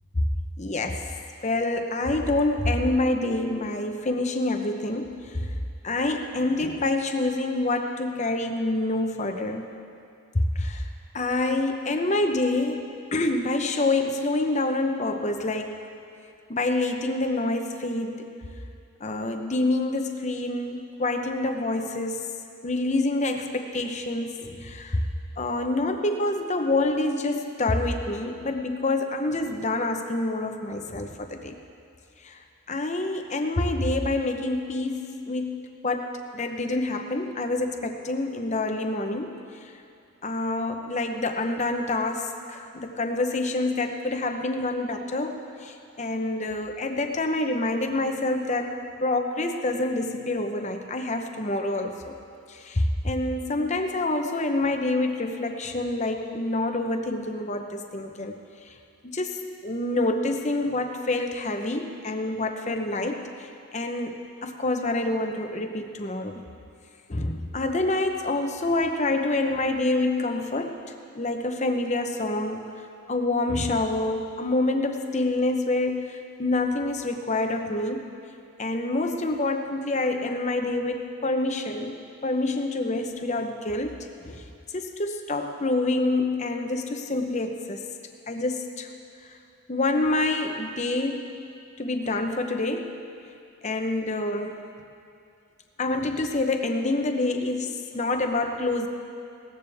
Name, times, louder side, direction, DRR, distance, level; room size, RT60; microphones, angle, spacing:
voice 1, 0.6-1.0 1.4-5.5 5.8-9.7 10.5-10.9 11.1-12.8 13.1-15.8 16.5-18.3 19.0-22.2 22.6-25.0 25.4-31.6 32.2-32.4 32.7-39.3 39.6-39.7 40.2-48.7 49.0-52.2 52.5-58.4 58.7-58.8 59.0-66.4 67.1-70.8 71.1-72.7 73.1-78.0 78.6-82.0 82.2-84.4 84.7-87.9 88.3-88.9 89.3-89.4 89.7-91.3 91.8-92.9 93.6-94.6 95.8-98.9, left 2 dB, 35° left, 5 dB, 0.8 m, -27 dB
18.0 x 14.0 x 3.5 m, 2.5 s
head